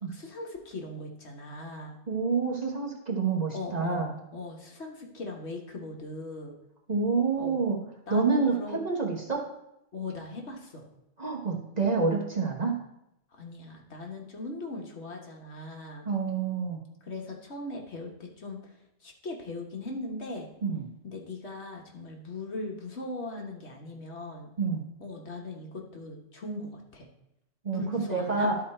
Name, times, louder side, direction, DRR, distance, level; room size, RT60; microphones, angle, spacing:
voice 1, 0.1-2.0 3.5-4.1 4.3-6.6 7.4-7.6 8.1-8.8 9.9-10.9 13.3-16.0 17.0-18.7 19.0-20.5 21.0-24.5 25.0-27.1 27.7-28.5, left 2 dB, 60° left, 1 dB, 1.5 m, -39 dB
voice 2, 2.1-4.1 6.9-7.8 8.1-8.5 8.8-9.5 11.2-12.8 16.0-16.8 20.6-20.8 24.6-24.8 27.6-28.6, right 4 dB, 35° right, -1 dB, 1.2 m, -28 dB
12.0 x 4.1 x 4.4 m, 0.83 s
omnidirectional pair, 1.3 m